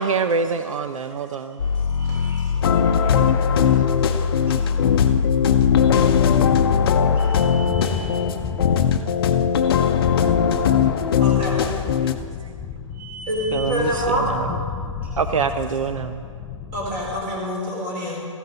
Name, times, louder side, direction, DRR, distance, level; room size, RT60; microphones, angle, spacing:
voice 1, 0.0-1.7 13.5-14.6 15.2-16.2, right 5 dB, 75° right, 9 dB, 0.6 m, -25 dB
sound 1, 1.6-7.7, left 5 dB, 80° left, 0.6 m, -23 dB
voice 2, 1.9-3.1 3.9-4.0 4.5-4.8 7.1-8.1 10.8-11.2 12.9-13.6 13.8-13.9 15.0-15.2, right 3 dB, 10° right, -6 dB, 1.7 m, -42 dB
sound 2, 2.6-12.1, left 8 dB, 45° left, 0.7 m, -20 dB
Thunder, 5.7-17.4, left 6 dB, 10° left, 0.3 m, -33 dB
voice 3, 11.2-11.6 13.3-14.3 16.7-18.2, equal, 25° right, -2 dB, 3.9 m, -26 dB
14.5 x 13.0 x 4.0 m, 2.2 s
hypercardioid pair, 150°, 17 cm